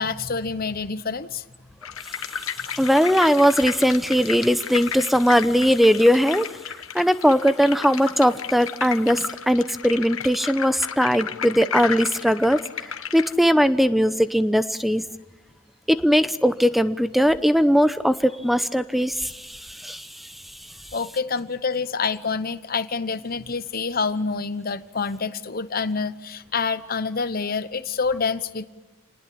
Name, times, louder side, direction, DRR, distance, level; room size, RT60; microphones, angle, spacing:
voice 1, 0.0-1.4 20.9-28.7, left 5 dB, 45° left, 12 dB, 0.9 m, -27 dB
sound 1, 1.8-13.3, left 8 dB, 80° left, 1.3 m, -33 dB
voice 2, 2.7-6.5 6.9-12.6 13.1-15.0 15.9-20.1, equal, ahead, 12 dB, 0.8 m, -19 dB
28.0 x 19.5 x 8.7 m, 1.1 s
head